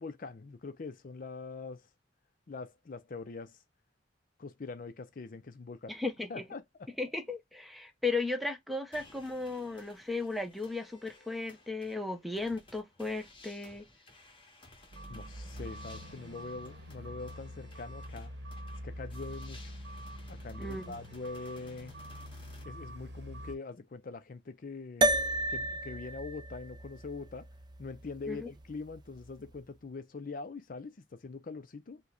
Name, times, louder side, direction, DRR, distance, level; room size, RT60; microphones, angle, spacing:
voice 1, 0.0-1.9 2.5-3.6 4.4-5.9 6.3-6.6 15.1-18.3 18.8-19.8 20.3-21.9 22.6-25.2 25.5-27.5 27.8-32.0, left 3 dB, 50° left, 0.5 m, -43 dB
voice 2, 5.9-6.4 7.0-13.9 20.6-21.0 28.3-28.5, left 3 dB, ahead, 0.8 m, -36 dB
sound 1, 8.9-22.6, left 2 dB, 30° left, 1.6 m, -57 dB
sound 2, 14.9-23.6, equal, 70° right, 0.9 m, -45 dB
sound 3, 25.0-29.6, right 1 dB, 25° right, 0.4 m, -33 dB
5.6 x 2.1 x 3.8 m
head